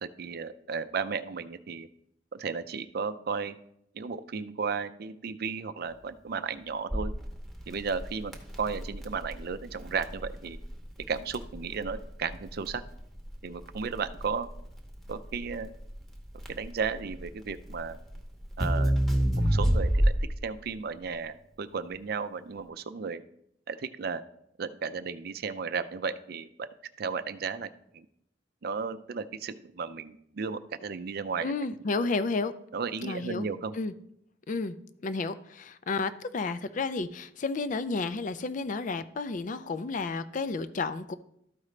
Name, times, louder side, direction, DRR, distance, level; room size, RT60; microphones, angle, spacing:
voice 1, 0.0-1.9 2.3-3.5 3.9-7.1 7.7-8.3 8.6-10.6 11.1-12.8 13.4-14.5 15.1-15.7 16.5-18.0 18.6-18.9 19.3-20.1 20.4-23.2 23.7-24.2 24.6-26.7 27.0-28.1 28.6-31.5 32.7-33.7, right 5 dB, 60° right, 12 dB, 0.4 m, -34 dB
Crackle, 6.9-20.5, equal, ahead, 0.9 m, -29 dB
voice 2, 31.4-32.5 33.0-33.4 33.7-33.9 34.5-34.7 35.0-41.2, left 3 dB, 45° left, 13 dB, 0.4 m, -31 dB
13.0 x 4.9 x 3.2 m, 0.75 s
head